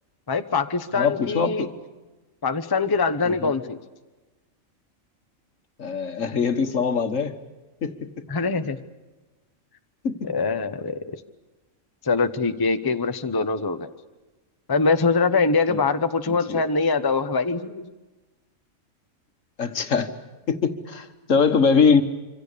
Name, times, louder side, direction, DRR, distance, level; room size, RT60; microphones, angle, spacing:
voice 1, 0.3-1.7 2.4-3.8 8.3-8.8 10.2-11.0 12.0-13.9 14.7-17.9, left 4 dB, 20° left, 8 dB, 0.8 m, -23 dB
voice 2, 0.9-1.7 3.3-3.5 5.8-7.3 7.8-8.0 10.0-10.1 15.7-15.8 16.3-16.6 19.6-20.1 20.5-22.0, left 5 dB, 65° left, 8 dB, 1.8 m, -22 dB
26.5 x 26.0 x 6.8 m, 1.2 s
omnidirectional pair, 1.4 m